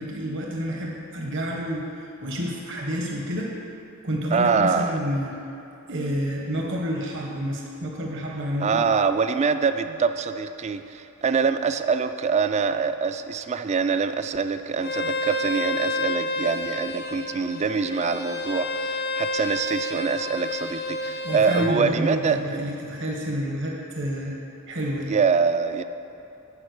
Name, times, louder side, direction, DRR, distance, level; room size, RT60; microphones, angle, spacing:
voice 1, 0.0-3.5 4.0-5.3 5.9-8.9 21.2-24.4 24.7-25.1, equal, 55° right, -1 dB, 1.1 m, -29 dB
voice 2, 4.3-5.0 8.6-22.6 25.1-25.8, right 5 dB, 30° right, 10 dB, 0.3 m, -24 dB
Bowed string instrument, 14.8-21.7, left 2 dB, 45° left, 0.5 m, -30 dB
11.0 x 5.0 x 6.5 m, 2.8 s
head